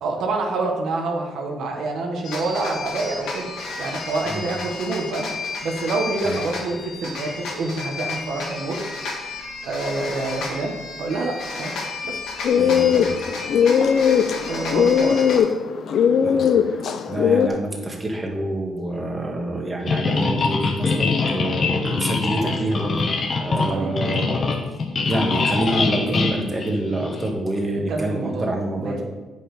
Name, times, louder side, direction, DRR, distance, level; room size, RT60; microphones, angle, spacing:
voice 1, 0.0-3.5 3.8-5.3 5.6-8.8 9.7-10.7 11.0-11.7 12.0-12.2 14.5-15.2 23.7-23.9 27.9-28.5 28.8-29.0, right 3 dB, 75° right, 1 dB, 1.3 m, -27 dB
sound 1, 2.2-15.4, left 3 dB, 85° left, 1.8 m, -32 dB
sound 2, 12.4-17.5, left 7 dB, 65° left, 0.5 m, -19 dB
voice 2, 12.6-13.2 16.2-16.8 17.1-23.1 23.3-24.4 25.0-29.0, right 1 dB, 20° right, 0 dB, 1.7 m, -27 dB
sound 3, 19.9-27.3, left 4 dB, 45° left, 1.1 m, -23 dB
8.4 x 5.5 x 5.0 m, 1.2 s
cardioid pair, 90°, 0 cm